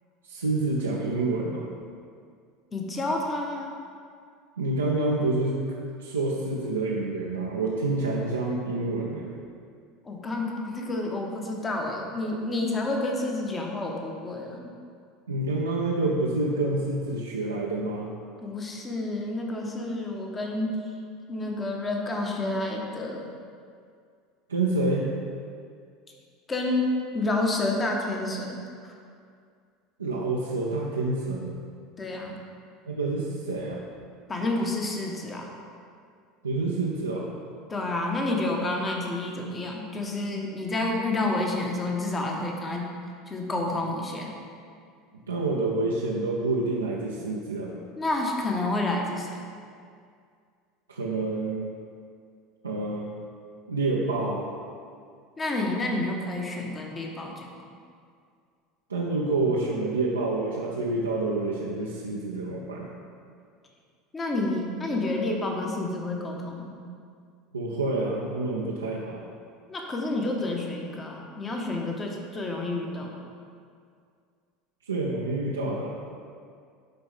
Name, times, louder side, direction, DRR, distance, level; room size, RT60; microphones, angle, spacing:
voice 1, 0.3-1.7 4.6-5.6 6.0-9.3 15.3-18.1 24.5-25.1 30.0-31.6 32.9-33.8 36.4-37.3 45.3-47.7 50.9-51.7 52.6-53.1 53.7-54.5 58.9-62.9 67.5-69.2 74.8-76.0, right 2 dB, 80° right, -4 dB, 0.6 m, -28 dB
voice 2, 2.7-3.7 10.0-14.7 18.4-20.9 21.3-23.3 26.5-28.6 32.0-32.4 34.3-35.5 37.7-42.9 43.3-44.3 48.0-49.4 55.4-57.5 64.1-66.7 69.7-73.1, left 2 dB, 25° left, 0 dB, 1.2 m, -29 dB
11.5 x 4.4 x 3.5 m, 2.2 s
figure-of-eight pair, 70°, 0 cm